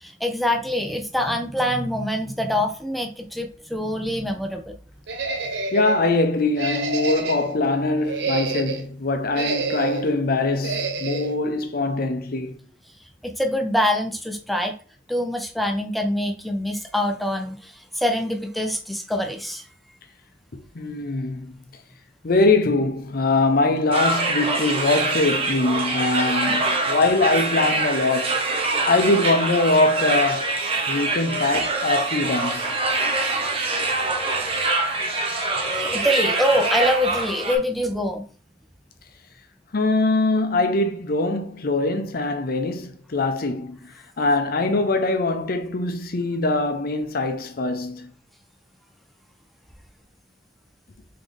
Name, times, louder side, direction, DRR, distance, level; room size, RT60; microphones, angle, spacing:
voice 1, 0.0-4.7 13.2-14.7 15.1-19.7 35.7-38.2, left 1 dB, ahead, 0.6 m, -25 dB
sound 1, 5.1-6.0 6.5-7.5 8.0-8.9 9.3-10.1 10.6-11.3, right 4 dB, 75° right, 0.7 m, -27 dB
voice 2, 5.7-12.6 20.7-21.6 22.2-28.4 28.9-30.5 30.9-32.7 39.7-48.1, left 2 dB, 55° left, 0.7 m, -22 dB
sound 2, 23.9-37.6, right 2 dB, 30° right, 0.9 m, -24 dB
4.1 x 3.8 x 3.3 m
head